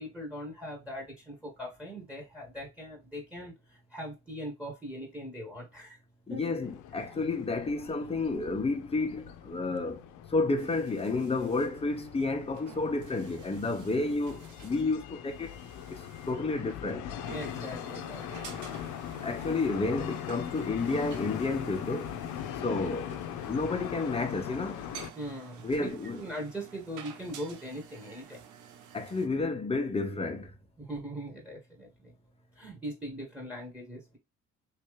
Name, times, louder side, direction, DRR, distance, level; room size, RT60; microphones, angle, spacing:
voice 1, 0.0-3.5 3.9-6.0 6.3-6.4 7.0-7.1 17.3-18.8 25.1-28.4 30.8-31.9 32.6-34.2, equal, 5° right, 1.5 m, -40 dB
voice 2, 6.3-10.0 10.3-15.5 15.9-17.0 19.2-22.2 22.6-23.2 23.5-24.8 25.6-26.2 28.9-30.5, left 3 dB, 20° left, 0.8 m, -31 dB
sound 1, 6.6-25.1, left 11 dB, 90° left, 0.5 m, -41 dB
sound 2, 10.6-29.3, right 8 dB, 80° right, 0.8 m, -50 dB
3.2 x 2.8 x 3.1 m
cardioid pair, 90°, 30 cm